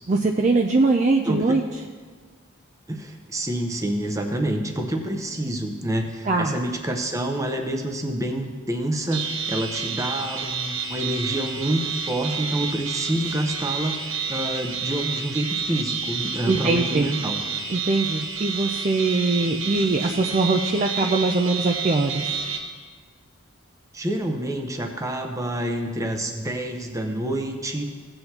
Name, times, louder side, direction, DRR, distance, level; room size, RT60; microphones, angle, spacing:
voice 1, 0.1-1.6 6.3-6.6 16.5-17.1 17.7-22.3, right 3 dB, 35° right, 2 dB, 0.4 m, -22 dB
voice 2, 1.2-1.6 2.9-17.4 23.9-27.9, right 1 dB, 15° right, 4 dB, 0.7 m, -27 dB
sound 1, 9.1-22.6, right 6 dB, 75° right, 1.1 m, -30 dB
16.5 x 7.8 x 2.9 m, 1.5 s
head